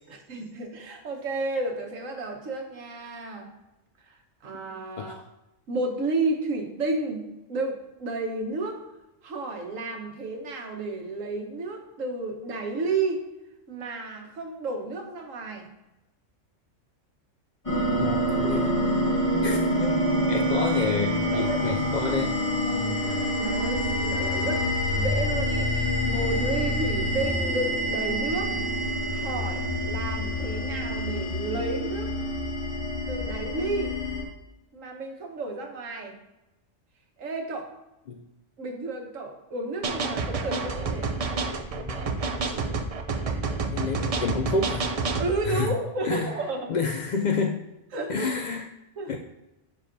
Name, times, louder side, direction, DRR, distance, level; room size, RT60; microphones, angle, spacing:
voice 1, 0.1-3.5 4.1-5.2 5.7-8.8 9.2-13.3 13.7-15.7 19.5-20.0 21.3-21.8 22.7-28.7 29.1-32.1 33.1-33.9 34.7-36.1 37.2-37.7 38.6-41.1 45.2-46.7 47.9-48.4 49.0-49.2, right 2 dB, 85° right, 2 dB, 1.5 m, -32 dB
voice 2, 5.0-5.3 17.9-18.7 19.4-20.0 20.3-22.4 38.1-38.2 41.5-42.1 43.7-44.9 45.4-45.7 46.0-46.4 46.7-47.6 48.1-48.7 49.1-49.2, left 4 dB, 70° left, 4 dB, 0.4 m, -29 dB
sound 1, 17.6-34.2, equal, 25° left, 1.7 m, -27 dB
sound 2, 39.8-45.3, right 4 dB, 50° right, 0.4 m, -29 dB
11.0 x 4.7 x 2.6 m, 0.96 s
omnidirectional pair, 1.3 m